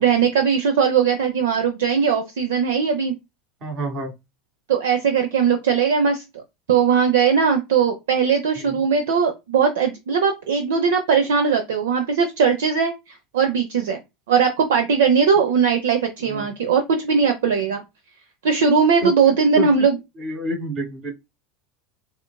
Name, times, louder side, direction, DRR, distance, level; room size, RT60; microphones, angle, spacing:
voice 1, 0.0-3.1 4.7-6.4 6.7-14.0 14.3-17.8 18.4-20.0, right 6 dB, 75° right, 0.5 m, -19 dB
voice 2, 3.6-4.1 16.2-16.5 19.0-19.1 19.6-19.7 20.2-21.1, right 1 dB, 50° right, 1.8 m, -27 dB
4.3 x 2.4 x 2.2 m
hypercardioid pair, 85°, 0 cm